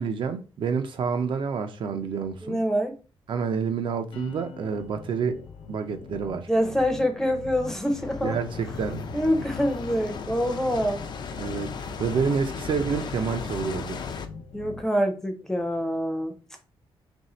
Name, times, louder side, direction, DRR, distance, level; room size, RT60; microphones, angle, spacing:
voice 1, 0.0-2.6 3.3-5.4 5.7-6.5 8.2-9.0 11.4-14.0, right 6 dB, 60° right, 0.5 m, -28 dB
voice 2, 2.4-3.0 6.5-8.4 9.1-11.0 14.5-16.4, equal, 5° left, 0.6 m, -25 dB
sound 1, 4.1-14.8, left 5 dB, 85° left, 0.7 m, -42 dB
sound 2, 7.4-14.3, left 5 dB, 50° left, 0.4 m, -36 dB
3.1 x 2.6 x 4.2 m
wide cardioid pair, 165°, 10 cm